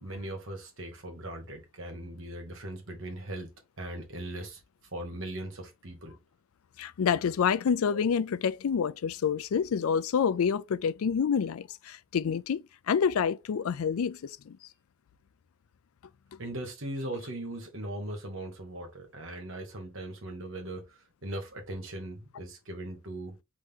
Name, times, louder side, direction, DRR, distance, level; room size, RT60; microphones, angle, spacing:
voice 1, 0.0-3.5 3.8-4.6 4.9-6.2 16.4-23.4, right 1 dB, 60° right, 1.5 m, -39 dB
voice 2, 6.8-14.6, left 7 dB, 80° left, 0.4 m, -28 dB
4.3 x 3.1 x 3.6 m
head